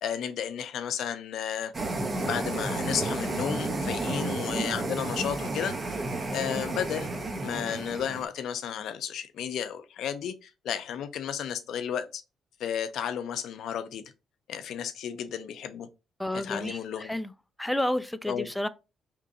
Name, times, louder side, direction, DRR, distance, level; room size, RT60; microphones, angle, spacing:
voice 1, 0.0-1.7 2.2-5.9 6.3-7.1 7.4-12.2 12.6-14.0 14.5-15.9 16.3-17.1 18.3-18.5, left 9 dB, 75° left, 0.5 m, -33 dB
sound 1, 1.7-8.3, right 2 dB, 35° right, 0.7 m, -31 dB
voice 2, 16.2-17.3 17.6-18.7, left 1 dB, 5° left, 0.3 m, -30 dB
3.0 x 2.6 x 3.7 m
cardioid pair, 90°, 0 cm